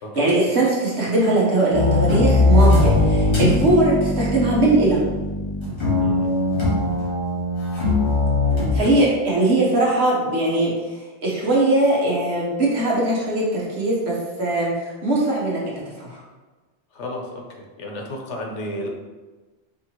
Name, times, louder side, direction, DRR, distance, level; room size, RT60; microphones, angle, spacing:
voice 1, 0.1-5.0 8.7-10.7 11.2-16.2, right 2 dB, 70° right, -5 dB, 1.5 m, -20 dB
Double bass upright bass - Dark- ambient, 1.7-8.8, left 2 dB, 25° left, 1.4 m, -20 dB
voice 2, 6.0-6.4 8.7-9.1 16.9-18.9, left 1 dB, 90° left, 1 dB, 1.1 m, -33 dB
4.9 x 3.5 x 3.0 m, 1.3 s
omnidirectional pair, 1.2 m